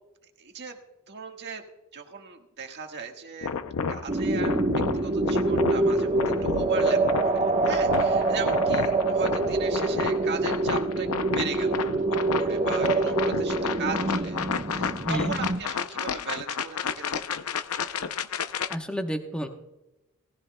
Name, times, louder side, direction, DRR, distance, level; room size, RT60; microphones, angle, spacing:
voice 1, 0.4-0.8 1.1-1.6 1.9-3.5 3.9-4.6 5.0-7.3 7.6-17.4, right 5 dB, 55° right, 3 dB, 1.5 m, -38 dB
sound 1, 3.4-18.8, left 6 dB, 90° left, 0.6 m, -31 dB
sound 2, 4.1-15.6, right 2 dB, 35° right, 1.1 m, -25 dB
voice 2, 18.7-19.5, equal, 5° left, 3 dB, 1.0 m, -30 dB
19.0 x 14.5 x 2.2 m, 0.94 s
head